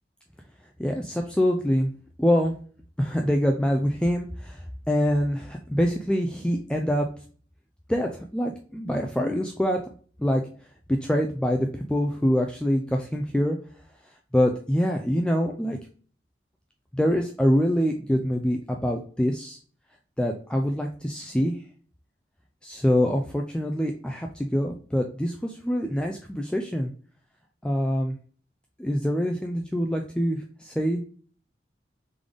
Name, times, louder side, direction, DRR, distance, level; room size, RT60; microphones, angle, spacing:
voice 1, 0.8-1.9 2.2-2.5 3.0-7.1 7.9-9.8 10.2-10.4 11.0-13.6 14.3-15.8 16.9-19.6 20.2-21.6 22.6-26.9 27.6-28.1 28.8-31.0, equal, 5° left, 2 dB, 0.3 m, -25 dB
3.7 x 3.4 x 3.5 m, 0.43 s
head